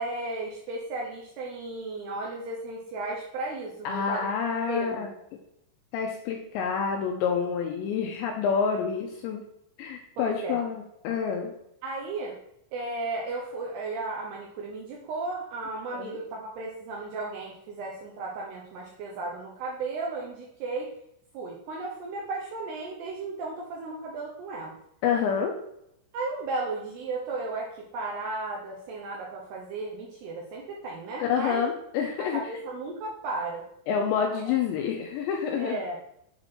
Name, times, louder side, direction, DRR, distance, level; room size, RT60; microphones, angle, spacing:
voice 1, 0.0-4.3 4.7-5.1 10.2-10.6 11.8-12.4 12.7-20.9 21.3-24.8 26.1-31.6 32.2-33.6 35.6-36.0, right 3 dB, 80° right, -2 dB, 2.4 m, -34 dB
voice 2, 3.8-5.1 5.9-9.4 9.8-11.5 15.9-16.1 25.0-25.5 31.2-32.4 33.9-35.8, left 6 dB, 90° left, 2 dB, 2.6 m, -28 dB
7.8 x 4.3 x 4.3 m, 0.78 s
omnidirectional pair, 5.7 m